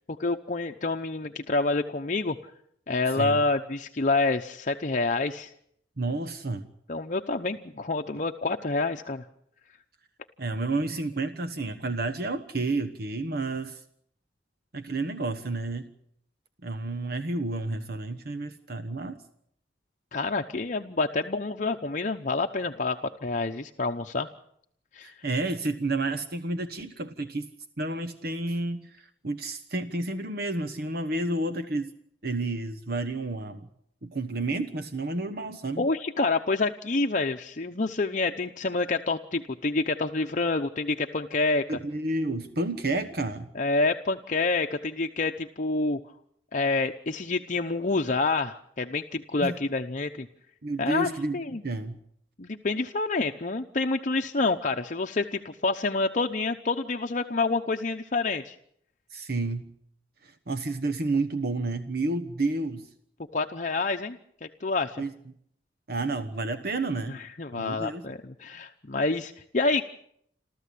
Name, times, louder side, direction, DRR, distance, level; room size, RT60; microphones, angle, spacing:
voice 1, 0.2-2.4 2.9-5.5 6.9-9.2 20.1-24.3 24.9-25.1 35.8-41.8 43.5-46.0 46.5-50.3 50.8-51.6 52.4-58.5 63.3-65.0 67.1-69.8, left 3 dB, 45° left, 4 dB, 0.8 m, -28 dB
voice 2, 6.0-6.7 10.4-13.8 14.7-15.9 16.6-19.2 25.0-27.5 27.8-31.9 32.2-33.7 34.0-35.9 41.7-43.5 49.4-49.6 50.6-52.0 59.1-59.7 60.2-62.9 65.0-65.1 65.9-67.2 67.5-68.1, right 2 dB, 60° right, 10 dB, 1.1 m, -30 dB
28.5 x 13.5 x 8.4 m, 0.70 s
head